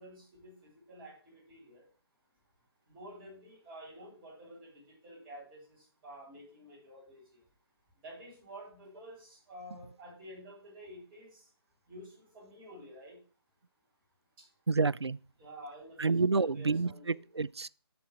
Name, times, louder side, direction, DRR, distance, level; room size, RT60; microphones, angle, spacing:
voice 1, 0.0-1.8 2.9-5.6 6.0-7.2 8.0-11.4 11.9-13.2 15.4-17.2, equal, 20° right, 3.9 m, -50 dB
voice 2, 14.7-15.2 16.0-17.7, right 4 dB, 90° right, 0.4 m, -29 dB
7.8 x 6.9 x 4.7 m
figure-of-eight pair, 145°, 14 cm